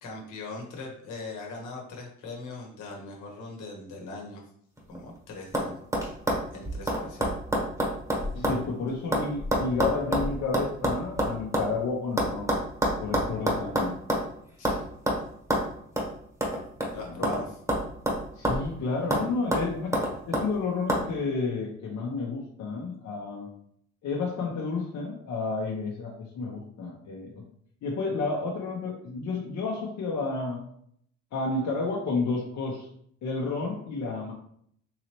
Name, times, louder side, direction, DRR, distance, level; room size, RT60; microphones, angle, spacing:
voice 1, 0.0-4.4 4.9-5.8 6.5-7.3 14.6-14.9 16.9-17.6, left 3 dB, 80° left, -1 dB, 1.2 m, -40 dB
sound 1, 4.8-5.2 5.5-5.7 5.9-8.6 8.9-11.7 12.2-14.3 14.6-14.8 15.1-15.2 15.5-15.6 16.0-16.1 16.4-17.4 17.7-18.7 19.1-19.2 19.5-20.5 20.9-21.0, equal, 10° right, 1.0 m, -27 dB
voice 2, 8.3-12.5 13.0-13.9 17.0-17.4 18.3-19.9 20.3-23.5 24.0-27.4 27.8-30.6 31.3-32.9 33.2-34.3, left 3 dB, 65° left, -2 dB, 0.8 m, -31 dB
3.9 x 2.9 x 2.9 m, 0.66 s
cardioid pair, 90°, 30 cm